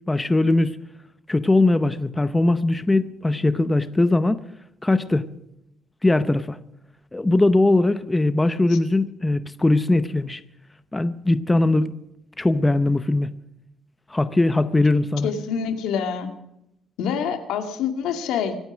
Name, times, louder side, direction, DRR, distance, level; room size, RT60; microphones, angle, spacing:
voice 1, 0.1-0.8 1.3-4.4 4.8-5.2 6.0-6.6 7.1-10.4 10.9-11.9 12.4-13.3 14.1-15.3, left 2 dB, 10° left, 13 dB, 0.7 m, -20 dB
voice 2, 15.2-16.3 17.0-18.6, left 7 dB, 90° left, 7 dB, 2.3 m, -26 dB
25.0 x 9.1 x 6.2 m, 0.82 s
cardioid pair, 140°, 0 cm